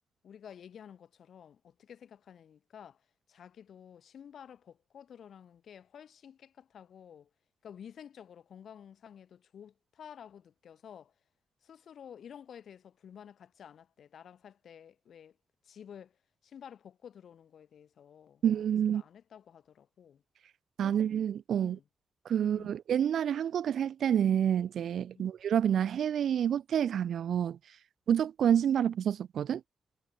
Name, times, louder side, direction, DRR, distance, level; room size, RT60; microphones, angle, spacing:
voice 1, 0.2-3.0 3.3-7.3 7.6-11.1 11.6-15.4 15.6-16.2 16.4-18.4 18.9-20.2 20.8-21.0 21.6-21.8 22.4-22.8 25.1-25.3, left 8 dB, 70° left, 6.9 m, -51 dB
voice 2, 18.4-19.0 20.8-21.8 22.3-27.6 28.1-29.6, right 9 dB, 80° right, 0.4 m, -28 dB
wide cardioid pair, 155°, 0 cm